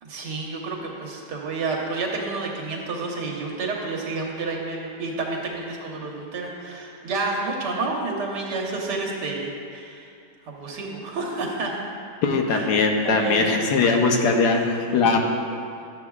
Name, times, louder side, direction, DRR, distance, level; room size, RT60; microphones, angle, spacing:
voice 1, 0.0-10.1 10.5-11.9 12.5-12.7 13.0-13.5 13.9-15.2, right 3 dB, 90° right, -1 dB, 1.7 m, -30 dB
voice 2, 12.2-15.2, left 4 dB, 80° left, 3 dB, 1.4 m, -20 dB
12.0 x 7.5 x 2.3 m, 2.4 s
omnidirectional pair, 1.8 m